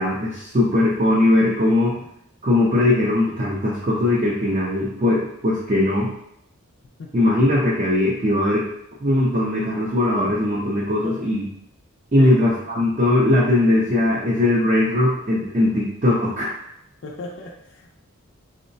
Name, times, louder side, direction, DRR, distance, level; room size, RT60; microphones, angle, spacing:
voice 1, 0.0-2.0 2.4-6.1 7.1-8.6 9.0-11.4 12.1-16.5, left 1 dB, 30° right, -6 dB, 0.4 m, -19 dB
voice 2, 17.0-17.9, left 3 dB, 55° left, -2 dB, 0.4 m, -36 dB
3.7 x 2.1 x 2.6 m, 0.75 s
head